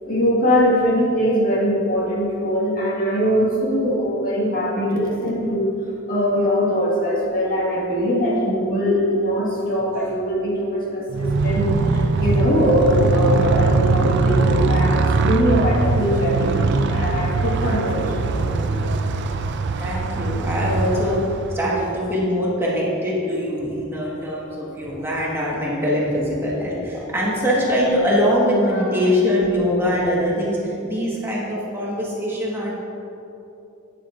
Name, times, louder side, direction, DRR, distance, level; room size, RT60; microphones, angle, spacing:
voice 1, 0.0-5.7 6.1-19.0 28.7-29.0, equal, 45° left, -4 dB, 1.8 m, -21 dB
Motorcycle, 11.1-21.8, right 3 dB, 60° right, 0.4 m, -21 dB
voice 2, 19.8-21.2 21.5-32.7, equal, 10° right, -6 dB, 1.5 m, -22 dB
12.0 x 9.0 x 2.5 m, 2.9 s
head